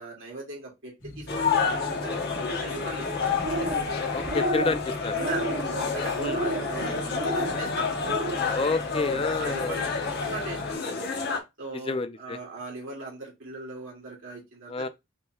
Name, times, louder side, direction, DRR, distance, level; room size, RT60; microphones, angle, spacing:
voice 1, 0.0-2.2 2.5-3.3 3.7-3.8 5.1-8.1 9.4-11.0 11.6-14.9, right 2 dB, 65° right, 2.2 m, -39 dB
sound 1, 1.0-10.8, left 1 dB, 65° left, 1.9 m, -41 dB
sound 2, 1.3-11.4, left 5 dB, 50° left, 1.1 m, -29 dB
sound 3, 3.3-3.9 4.2-4.8 5.1-5.7 6.2-6.7 7.1-7.5 8.0-8.4, right 2 dB, 50° right, 0.9 m, -31 dB
voice 2, 4.1-5.2 6.2-6.4 8.5-9.9 11.9-12.4 14.7-14.9, left 3 dB, 25° left, 0.4 m, -29 dB
5.3 x 3.1 x 2.3 m
head